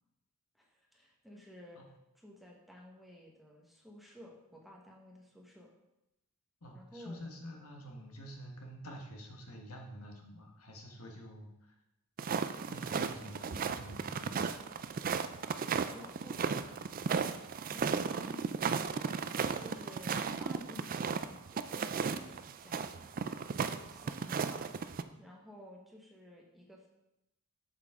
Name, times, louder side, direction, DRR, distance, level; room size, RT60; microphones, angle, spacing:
voice 1, 0.5-1.8 2.1-5.7 6.7-7.2 15.8-18.7 19.6-23.0 23.6-24.8 25.2-26.9, left 1 dB, ahead, -2 dB, 1.3 m, -54 dB
voice 2, 6.6-11.8 12.7-14.5 19.5-19.6, equal, 80° left, 1 dB, 1.4 m, -48 dB
sound 1, 12.2-25.0, right 5 dB, 40° right, 0.4 m, -35 dB
7.8 x 7.2 x 3.7 m, 0.89 s
head